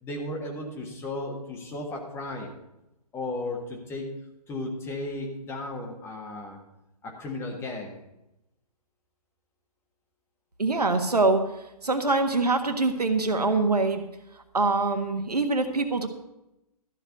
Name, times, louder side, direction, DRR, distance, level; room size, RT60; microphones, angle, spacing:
voice 1, 0.0-2.6 3.1-4.1 4.5-6.6 7.0-8.0, left 2 dB, 10° left, 1 dB, 1.6 m, -35 dB
voice 2, 10.6-11.4 11.8-14.1 14.5-16.1, right 3 dB, 80° right, 6 dB, 1.5 m, -24 dB
13.0 x 5.2 x 8.1 m, 0.91 s
figure-of-eight pair, 130°, 20 cm